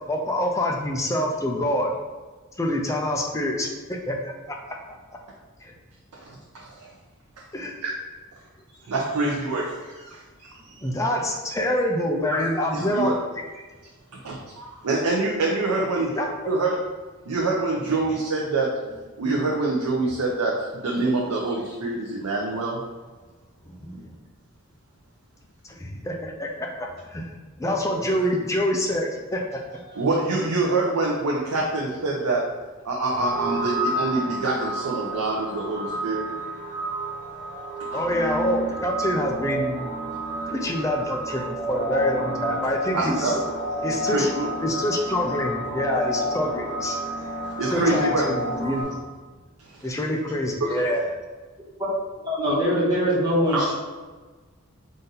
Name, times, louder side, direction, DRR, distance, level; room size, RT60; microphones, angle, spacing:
voice 1, 0.1-1.9 2.6-4.6 5.6-5.7 7.5-7.8 10.8-13.1 15.9-16.3 23.7-24.1 26.0-27.3 27.6-29.6 37.9-39.8 40.5-43.4 43.8-44.3 44.6-47.0 47.7-49.0 49.8-51.1, left 1 dB, 15° left, 1 dB, 0.4 m, -26 dB
voice 2, 6.3-6.9 7.8-7.9 8.9-10.8 12.7-13.1 14.2-16.2 16.5-16.8 17.3-18.7 19.2-22.8 29.9-32.4 32.8-36.2 37.9-38.0 42.9-43.4 44.1-44.5 47.6-48.2 50.6-50.8 53.5-53.7, right 3 dB, 90° right, -2 dB, 0.6 m, -25 dB
sound 1, 33.1-48.8, right 1 dB, 45° left, 1.5 m, -30 dB
voice 3, 52.2-53.7, equal, 20° right, -7 dB, 1.2 m, -22 dB
4.0 x 2.6 x 3.9 m, 1.3 s
head